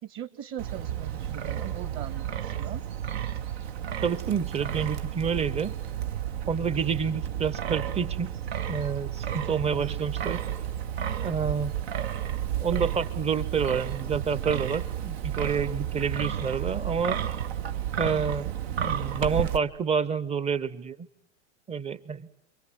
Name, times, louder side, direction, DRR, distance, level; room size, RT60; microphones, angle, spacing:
voice 1, 0.0-2.8 9.7-10.1, right 10 dB, 35° right, 11 dB, 2.1 m, -40 dB
Wind, 0.6-19.6, right 10 dB, 60° right, 1.5 m, -32 dB
voice 2, 4.0-5.7 6.5-8.4 8.7-10.4 11.2-11.7 12.6-17.2 18.0-21.1 21.7-22.3, right 6 dB, 15° right, 16 dB, 1.1 m, -29 dB
29.0 x 23.5 x 8.1 m, 0.79 s
figure-of-eight pair, 95°, 36 cm